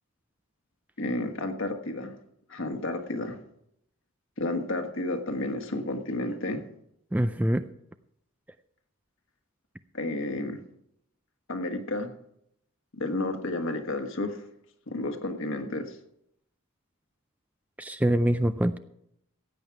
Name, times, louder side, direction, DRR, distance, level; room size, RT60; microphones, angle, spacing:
voice 1, 1.0-2.1 2.5-3.4 4.4-6.6 9.9-10.6 11.5-12.1 12.9-14.4 14.9-16.0, left 2 dB, 60° left, 6 dB, 1.4 m, -31 dB
voice 2, 7.1-7.7 17.8-18.8, right 1 dB, 5° right, 10 dB, 0.3 m, -24 dB
16.0 x 9.0 x 4.7 m, 0.75 s
head